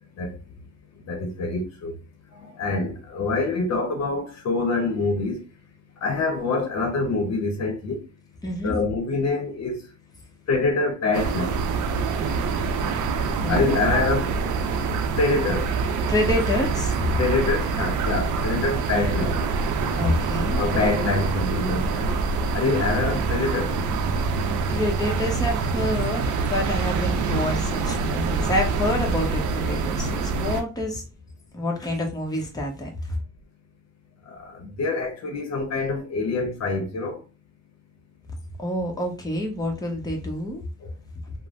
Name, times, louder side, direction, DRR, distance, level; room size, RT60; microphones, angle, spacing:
voice 1, 1.1-1.9 2.6-5.4 6.0-8.0 8.6-9.8 10.5-11.5 13.5-14.3 15.2-15.7 17.2-19.4 20.6-22.1 22.5-23.7 34.3-37.2, left 3 dB, 60° left, 0.8 m, -25 dB
voice 2, 8.4-8.8 13.4-13.7 16.1-17.0 20.0-20.6 24.3-31.0 31.5-33.2 38.6-40.6, left 1 dB, 15° left, 0.9 m, -27 dB
sound 1, 11.1-30.6, right 4 dB, 75° right, 0.5 m, -25 dB
3.1 x 2.1 x 2.5 m
cardioid pair, 90°, 30 cm